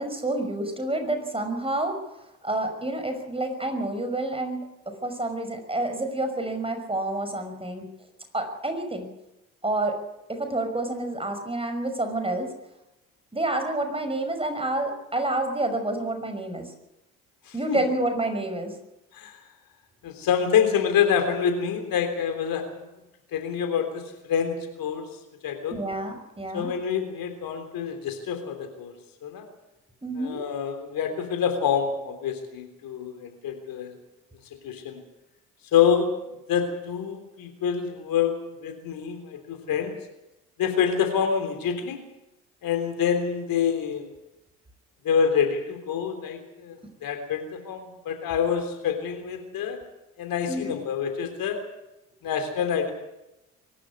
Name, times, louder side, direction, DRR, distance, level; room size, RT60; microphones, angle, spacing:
voice 1, 0.0-2.0 2.4-7.9 8.3-9.1 9.6-10.0 10.3-12.5 13.3-16.7 17.5-18.8 25.7-26.7 30.0-30.4 50.5-50.8, right 2 dB, 15° right, 6 dB, 5.8 m, -28 dB
voice 2, 20.0-22.7 23.3-25.1 25.4-25.7 26.5-28.9 29.2-29.5 30.2-33.9 34.6-35.0 35.7-36.1 36.5-39.9 40.6-42.0 42.6-44.1 45.0-49.8 50.2-51.6 52.2-52.9, left 7 dB, 55° left, 6 dB, 3.6 m, -26 dB
23.5 x 13.0 x 9.6 m, 0.93 s
figure-of-eight pair, 55°, 41 cm